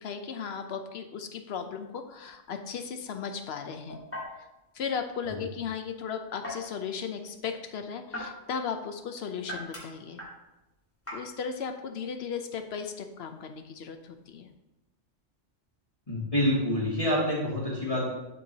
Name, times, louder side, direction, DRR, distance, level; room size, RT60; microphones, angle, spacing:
voice 1, 0.0-4.0 4.7-10.2 11.1-14.5, left 6 dB, 65° left, 7 dB, 0.9 m, -36 dB
sound 1, 1.6-14.5, left 1 dB, 10° left, 1.7 m, -45 dB
voice 2, 16.1-18.1, left 1 dB, 30° left, -8 dB, 2.4 m, -27 dB
11.0 x 4.5 x 2.8 m, 0.99 s
omnidirectional pair, 1.2 m